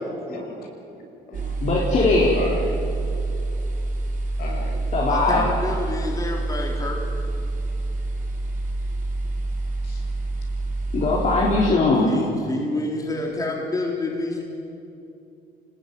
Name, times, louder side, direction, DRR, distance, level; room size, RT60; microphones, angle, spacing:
voice 1, 0.2-1.0 1.3-1.6 2.2-2.7 4.4-4.7 9.8-10.0, left 3 dB, 65° left, 1 dB, 6.7 m, -35 dB
sound 1, 1.3-11.7, right 2 dB, 50° right, 6.0 m, -27 dB
voice 2, 1.6-2.3 4.9-5.4 10.9-12.1, left 3 dB, 45° left, -4 dB, 4.3 m, -20 dB
voice 3, 5.1-7.0 12.0-14.4, left 2 dB, 20° left, -1 dB, 3.7 m, -28 dB
27.0 x 19.5 x 9.7 m, 2.7 s
cardioid pair, 110°, 17 cm